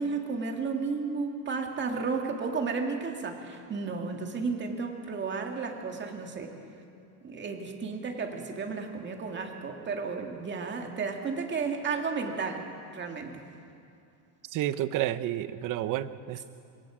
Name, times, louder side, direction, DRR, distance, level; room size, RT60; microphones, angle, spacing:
voice 1, 0.0-6.6 7.2-13.4, right 4 dB, 20° right, 3 dB, 2.0 m, -33 dB
voice 2, 14.5-16.4, right 13 dB, 40° right, 13 dB, 0.8 m, -30 dB
26.0 x 22.5 x 5.0 m, 2.5 s
supercardioid pair, 145°, 49 cm